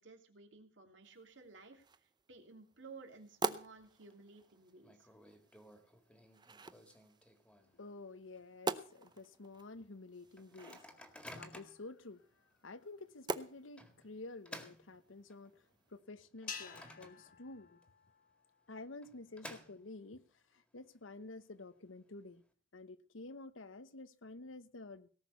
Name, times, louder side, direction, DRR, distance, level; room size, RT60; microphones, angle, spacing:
voice 1, 0.0-5.1, right 4 dB, 70° right, 2.7 m, -56 dB
sound 1, 1.0-16.0, right 3 dB, 20° right, 0.6 m, -47 dB
Microwave oven, 3.7-4.1 4.4-4.5 4.8-7.9 8.3-8.4 8.7-9.0 9.5-9.6 10.4-11.9 12.5-12.6 13.8-15.6 16.0-17.5 17.8-17.9 18.8-20.2, left 1 dB, 5° left, 1.8 m, -54 dB
voice 2, 7.7-10.8 11.3-17.8 18.7-22.4 22.7-25.1, left 2 dB, 90° left, 1.0 m, -51 dB
sound 2, 16.5-18.9, left 6 dB, 45° left, 1.4 m, -50 dB
18.0 x 6.3 x 8.2 m
head